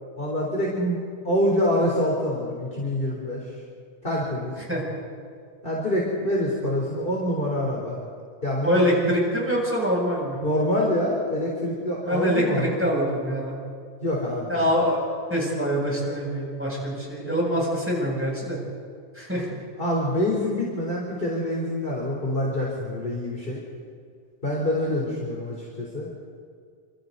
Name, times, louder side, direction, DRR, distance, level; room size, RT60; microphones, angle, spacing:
voice 1, 0.1-3.4 4.0-4.5 5.6-8.0 8.4-9.1 10.4-12.7 14.0-14.6 19.8-23.6 24.4-26.1, left 1 dB, 15° left, -3 dB, 3.9 m, -26 dB
voice 2, 8.6-10.4 12.0-13.5 14.5-18.6 19.1-19.6, equal, 5° right, -4 dB, 7.7 m, -25 dB
28.5 x 27.0 x 4.1 m, 2.1 s
omnidirectional pair, 3.4 m